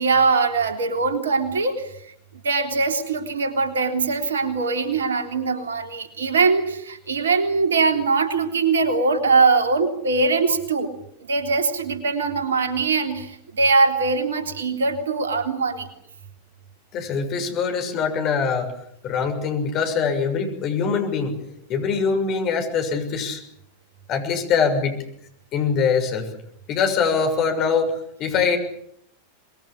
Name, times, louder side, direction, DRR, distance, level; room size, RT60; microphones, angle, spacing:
voice 1, 0.0-1.9 2.4-10.9 11.3-15.9, right 4 dB, 65° right, 7 dB, 3.5 m, -21 dB
voice 2, 16.9-18.7 19.0-21.3 21.7-23.4 24.1-25.0 25.5-26.3 26.7-28.6, left 5 dB, 35° left, 5 dB, 6.7 m, -23 dB
25.0 x 22.0 x 8.7 m, 0.69 s
figure-of-eight pair, 90°, 0 cm